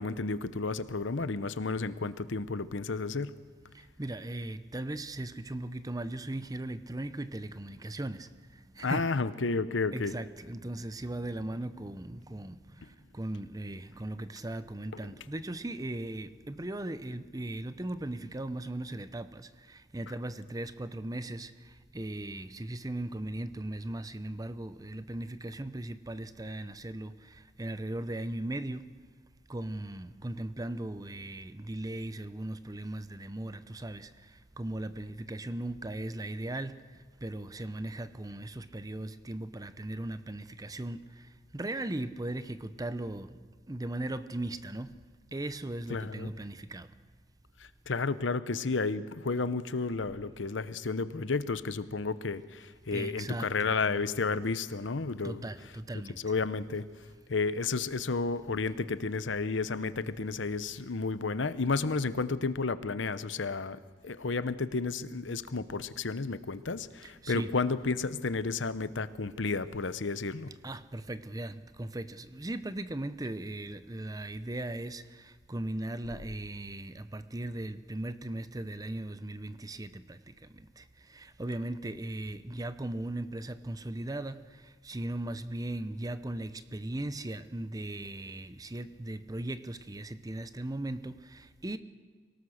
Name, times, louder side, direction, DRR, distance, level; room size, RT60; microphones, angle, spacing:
voice 1, 0.0-3.3 8.8-10.1 45.9-46.3 47.9-55.4 56.2-56.9 57.3-70.5, left 4 dB, 80° left, 0.9 m, -32 dB
voice 2, 4.0-9.1 9.9-12.8 13.1-21.5 21.9-28.9 29.5-34.1 34.6-36.8 37.2-41.3 41.5-43.3 43.7-44.9 45.3-46.9 52.9-53.7 55.2-56.2 67.0-67.5 70.6-80.8 81.1-84.4 84.8-91.8, right 1 dB, 20° right, 0.7 m, -38 dB
24.5 x 18.0 x 6.5 m
head